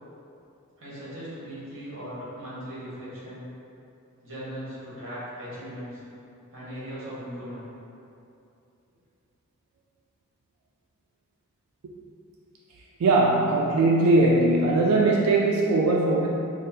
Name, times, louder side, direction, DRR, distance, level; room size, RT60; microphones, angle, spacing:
voice 1, 0.8-3.5 4.2-6.0 6.5-7.7, equal, 65° right, -9 dB, 1.4 m, -38 dB
voice 2, 13.0-16.3, right 2 dB, 90° right, -3 dB, 0.4 m, -20 dB
4.8 x 2.2 x 2.7 m, 2.7 s
head